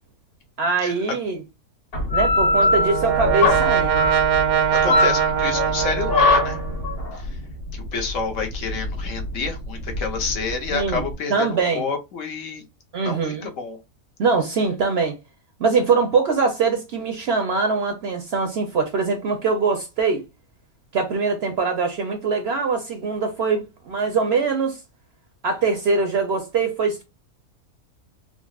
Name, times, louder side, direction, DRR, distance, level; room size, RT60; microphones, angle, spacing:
voice 1, 0.6-1.4 2.1-4.0 4.8-5.1 10.7-11.0 11.3-11.9 12.9-13.5 14.2-15.2 15.6-20.2 20.9-24.8 25.4-27.0, right 4 dB, 60° right, 0.7 m, -22 dB
sound 1, 1.9-11.1, left 3 dB, 45° left, 1.2 m, -22 dB
Brass instrument, 2.2-7.0, right 8 dB, 85° right, 1.1 m, -22 dB
voice 2, 4.8-6.6 7.1-7.3 7.7-11.5 11.7-12.6 13.0-13.8, left 5 dB, 65° left, 1.1 m, -29 dB
3.8 x 2.0 x 2.3 m
omnidirectional pair, 1.5 m